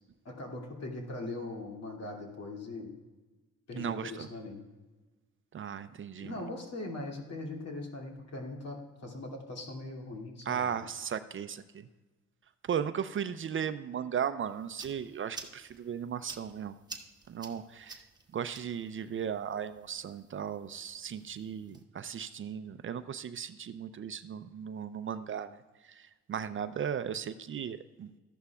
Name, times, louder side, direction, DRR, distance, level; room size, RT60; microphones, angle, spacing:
voice 1, 0.2-2.9 3.7-4.6 6.2-10.8, left 2 dB, 55° left, 0 dB, 2.6 m, -40 dB
voice 2, 3.8-4.3 5.5-6.3 10.5-11.9 12.6-16.7 17.3-18.0 18.3-25.6 25.8-28.1, right 8 dB, 40° right, 11 dB, 0.5 m, -36 dB
sound 1, 14.4-21.8, right 3 dB, 15° right, 1.1 m, -51 dB
14.0 x 11.0 x 2.4 m, 1.2 s
cardioid pair, 90°, 30 cm